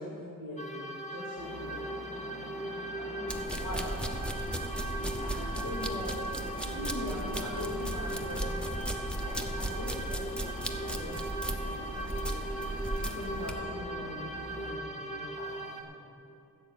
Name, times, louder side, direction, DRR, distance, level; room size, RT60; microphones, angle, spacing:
voice 1, 0.0-1.8 2.3-2.4 5.2-12.3 12.6-16.3, left 1 dB, 70° left, -5 dB, 2.4 m, -43 dB
sound 1, 0.6-15.8, right 1 dB, 20° left, 1.9 m, -39 dB
sound 2, 1.4-14.7, left 1 dB, 90° left, 2.1 m, -45 dB
voice 2, 3.0-4.1 5.0-5.7 6.8-7.5, left 1 dB, 50° left, -4 dB, 2.3 m, -43 dB
sound 3, 3.3-13.5, right 1 dB, 5° left, 0.6 m, -36 dB
15.0 x 7.7 x 6.8 m, 2.7 s
wide cardioid pair, 160°, 35 cm